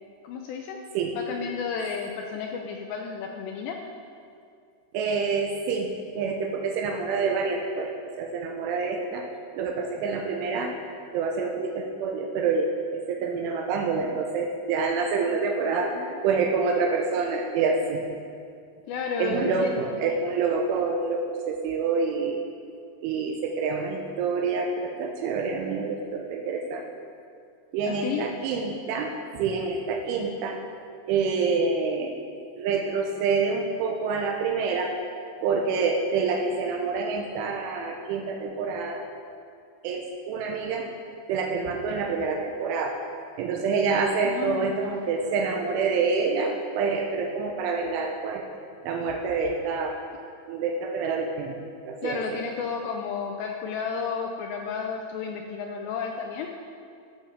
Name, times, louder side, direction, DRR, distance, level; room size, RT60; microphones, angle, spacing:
voice 1, 0.2-0.8 1.1-3.8 15.9-16.1 18.9-20.0 27.9-28.3 44.2-44.8 52.0-56.5, left 6 dB, 90° left, 2 dB, 2.5 m, -32 dB
voice 2, 4.9-5.9 6.2-9.3 9.6-10.8 11.1-18.0 19.2-22.4 23.0-26.8 27.7-30.6 31.1-32.2 32.6-34.9 35.4-39.0 39.8-40.9 41.3-43.0 43.4-48.4 48.8-50.0 50.5-51.6 51.8-52.4, right 4 dB, 85° right, 1 dB, 3.2 m, -27 dB
14.5 x 6.4 x 6.5 m, 2.4 s
omnidirectional pair, 5.7 m